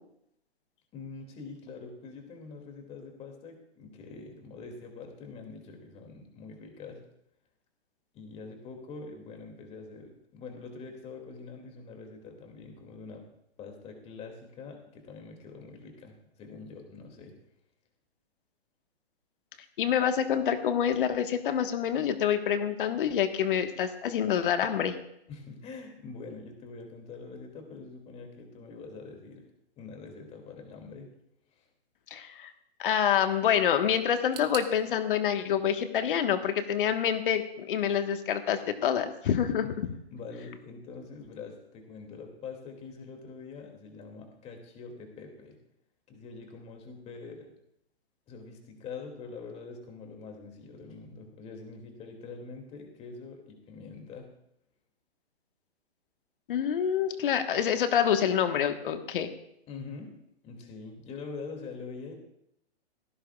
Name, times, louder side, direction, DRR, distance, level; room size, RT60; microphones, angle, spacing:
voice 1, 0.9-7.0 8.1-13.3 13.6-17.4 25.3-29.5 29.8-31.1 31.6-31.7 39.6-45.6 46.1-47.5 48.3-54.3 59.7-60.2 60.4-62.2, left 4 dB, 20° left, 3 dB, 2.5 m, -44 dB
voice 2, 19.8-25.0 32.1-32.5 32.8-39.7 56.5-59.3, left 8 dB, 50° left, 7 dB, 1.5 m, -27 dB
sound 1, 34.3-37.2 37.4-38.3 38.6-38.7 39.5-39.6, right 8 dB, 55° right, 1.8 m, -48 dB
18.0 x 15.0 x 2.4 m, 0.76 s
hypercardioid pair, 140°, 33 cm